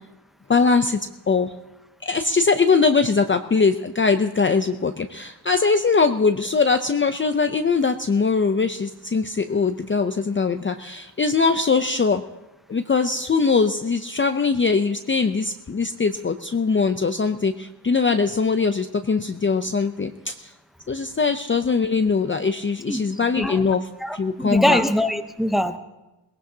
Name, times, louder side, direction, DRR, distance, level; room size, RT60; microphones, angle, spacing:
voice 1, 0.5-1.0 1.3-1.5 2.1-12.2 12.7-20.5 20.9-23.9 24.1-24.8, left 4 dB, 25° left, 7 dB, 0.6 m, -21 dB
voice 2, 24.0-25.8, equal, ahead, 8 dB, 0.8 m, -22 dB
22.5 x 18.0 x 2.8 m, 1.0 s
wide cardioid pair, 95°, 44 cm